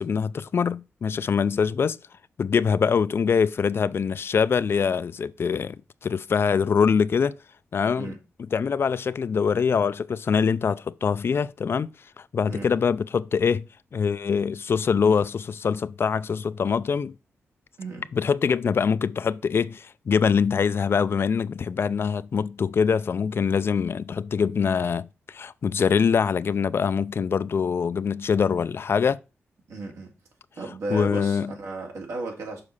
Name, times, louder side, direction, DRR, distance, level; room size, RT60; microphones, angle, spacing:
voice 1, 0.0-2.0 2.4-5.8 6.0-7.4 7.7-8.1 8.5-11.9 12.2-13.7 13.9-17.2 18.1-29.2 30.9-31.5, left 6 dB, 55° left, 0.4 m, -24 dB
voice 2, 29.7-30.1 30.5-32.6, right 2 dB, 80° right, 2.4 m, -34 dB
6.6 x 4.8 x 5.5 m
cardioid pair, 90°, 5 cm